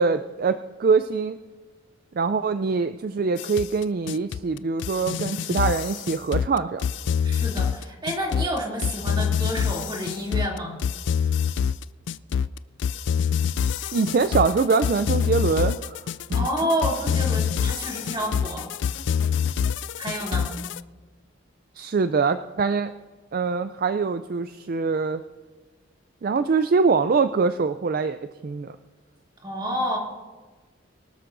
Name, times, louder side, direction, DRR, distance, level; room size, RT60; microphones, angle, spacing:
voice 1, 0.0-1.4 2.2-6.8 13.9-16.0 21.8-22.9 23.3-25.2 26.2-28.8, right 4 dB, 45° right, 10 dB, 0.4 m, -23 dB
sound 1, 3.4-20.8, left 7 dB, 65° left, 0.3 m, -26 dB
voice 2, 7.2-10.8 16.3-18.7 20.0-20.5 29.4-30.0, equal, 25° right, -2 dB, 2.7 m, -29 dB
23.5 x 12.5 x 2.6 m, 1.4 s
head